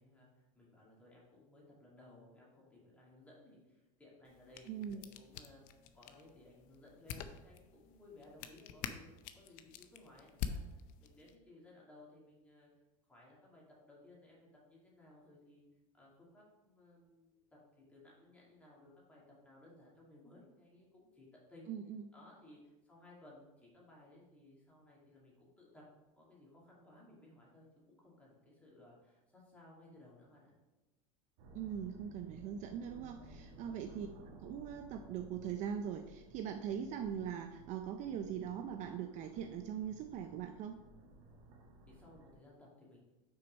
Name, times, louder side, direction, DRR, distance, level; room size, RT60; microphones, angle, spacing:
voice 1, 0.0-12.7 13.1-15.6 15.9-21.7 22.1-25.9 26.1-30.5 33.2-33.8 41.9-43.0, left 2 dB, 10° left, -5 dB, 2.3 m, -60 dB
sound 1, 4.2-11.4, left 8 dB, 50° left, 0.6 m, -47 dB
voice 2, 4.7-5.0 21.7-22.1 31.5-40.8, right 8 dB, 40° right, 6 dB, 0.5 m, -41 dB
sound 2, 31.4-42.4, right 1 dB, 65° right, 1.7 m, -58 dB
6.1 x 4.5 x 5.2 m, 1.1 s
supercardioid pair, 140°, 18 cm